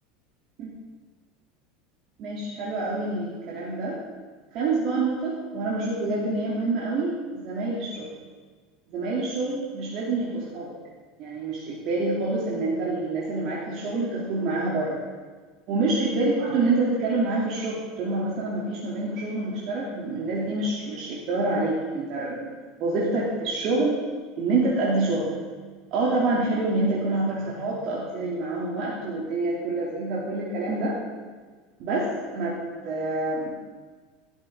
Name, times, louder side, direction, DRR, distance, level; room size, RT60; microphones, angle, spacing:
voice 1, 2.2-4.0 4.5-8.1 8.9-10.7 11.2-15.0 15.7-22.5 22.8-24.0 24.4-25.4 25.9-31.0 31.8-32.6 32.8-33.5, right 2 dB, 55° right, -6 dB, 3.0 m, -27 dB
13.5 x 11.5 x 3.8 m, 1.4 s
hypercardioid pair, 80°, 0 cm